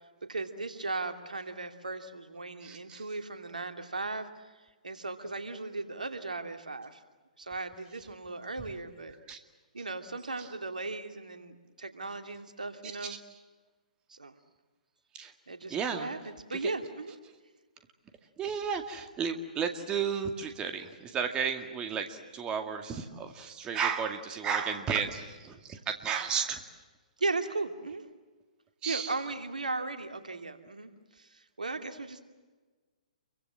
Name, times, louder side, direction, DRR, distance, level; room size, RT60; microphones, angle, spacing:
voice 1, 0.3-4.5 4.8-7.0 7.4-9.2 9.7-13.2 14.1-14.3 15.5-17.1 27.2-28.1 28.9-32.2, right 3 dB, 80° right, 7 dB, 2.7 m, -37 dB
voice 2, 2.6-3.0 9.3-9.4 13.0-13.1 15.1-15.3 15.7-16.1 16.6-16.7 18.4-26.6 28.8-29.1, right 6 dB, 20° right, 7 dB, 2.2 m, -33 dB
29.0 x 24.0 x 7.6 m, 1.3 s
figure-of-eight pair, 125°, 4 cm